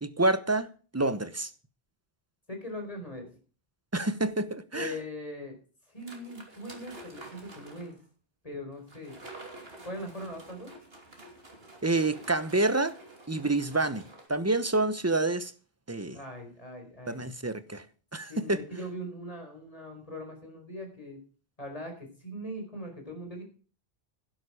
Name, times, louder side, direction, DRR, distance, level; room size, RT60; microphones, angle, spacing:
voice 1, 0.0-1.5 3.9-4.9 11.8-12.9 13.3-15.5 15.9-16.2 17.1-17.8 18.1-18.6, right 2 dB, 15° right, 0.9 m, -28 dB
voice 2, 2.5-3.3 4.7-5.6 5.9-8.0 8.4-9.1 9.8-10.7 16.1-17.3 18.2-21.2 21.6-23.4, left 1 dB, 35° left, 4.8 m, -40 dB
sound 1, 6.0-8.0 8.9-14.3, right 2 dB, 75° right, 3.1 m, -49 dB
11.5 x 11.5 x 5.0 m
omnidirectional pair, 1.0 m